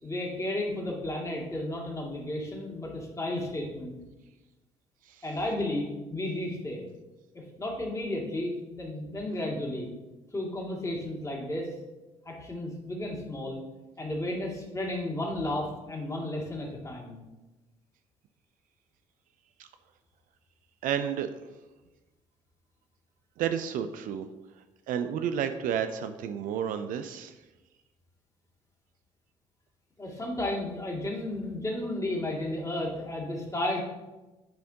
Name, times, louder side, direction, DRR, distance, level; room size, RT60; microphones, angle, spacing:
voice 1, 0.0-3.9 5.2-6.9 7.3-9.9 10.3-11.7 12.2-13.6 14.0-17.2 30.0-33.8, left 1 dB, 20° left, -2 dB, 2.2 m, -33 dB
voice 2, 20.8-21.3 23.4-24.3 24.9-27.3, right 8 dB, 60° right, 9 dB, 0.4 m, -31 dB
10.5 x 4.2 x 2.8 m, 1.1 s
hypercardioid pair, 50°, 16 cm